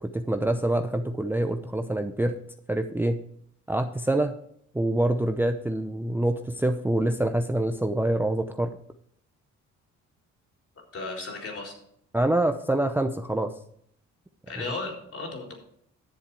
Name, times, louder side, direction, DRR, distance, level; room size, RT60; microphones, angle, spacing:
voice 1, 0.0-2.4 2.7-3.2 3.7-4.3 4.7-8.8 12.1-13.5 14.6-14.7, right 1 dB, 5° right, 7 dB, 0.7 m, -26 dB
voice 2, 10.9-11.7 14.5-15.5, left 3 dB, 50° left, 1 dB, 4.0 m, -35 dB
10.5 x 7.3 x 4.8 m, 0.66 s
cardioid pair, 90°, 30 cm